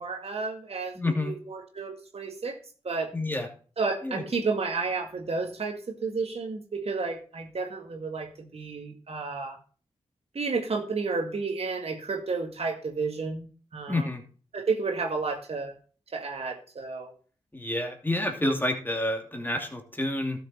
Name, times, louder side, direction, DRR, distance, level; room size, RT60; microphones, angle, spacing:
voice 1, 0.0-2.6 2.8-3.1 3.8-9.6 10.3-14.1 14.5-15.7 16.1-17.1, right 4 dB, 60° right, 4 dB, 1.9 m, -31 dB
voice 2, 0.9-1.3 3.1-3.5 4.0-4.2 13.9-14.2 17.5-20.4, left 1 dB, 15° left, 3 dB, 2.7 m, -29 dB
12.5 x 6.6 x 4.4 m, 0.40 s
cardioid pair, 40°, 12 cm